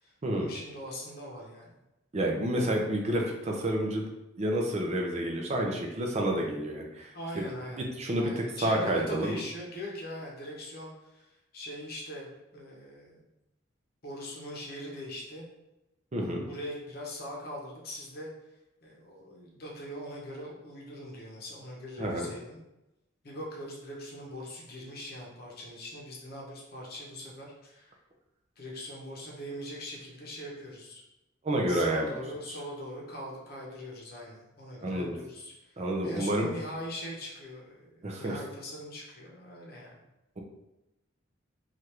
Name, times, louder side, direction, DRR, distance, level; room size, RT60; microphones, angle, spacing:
voice 1, 0.0-1.8 7.1-7.9 8.1-13.2 14.0-15.4 16.2-18.3 18.8-22.6 23.2-28.0 28.6-31.0 31.7-35.8 36.0-40.0, equal, 50° left, -2 dB, 0.8 m, -41 dB
voice 2, 2.1-4.1 4.4-7.4 8.0-9.4 16.1-16.4 22.0-22.3 31.4-32.2 32.5-32.6 34.8-35.2 35.8-36.5 38.0-38.4, right 1 dB, 30° right, 0 dB, 0.5 m, -29 dB
3.3 x 2.4 x 2.9 m, 0.94 s
head